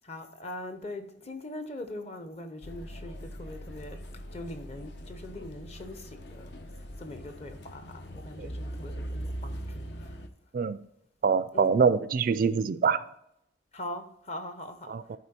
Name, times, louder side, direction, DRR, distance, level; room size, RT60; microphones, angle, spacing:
voice 1, 0.0-4.0 4.3-10.2 11.5-11.8 13.7-15.2, left 1 dB, 35° left, 0.9 m, -42 dB
sound 1, 2.6-10.3, right 1 dB, 60° left, 0.8 m, -41 dB
voice 2, 11.2-13.0 14.9-15.2, right 5 dB, 45° right, 0.3 m, -25 dB
11.5 x 4.6 x 4.4 m
head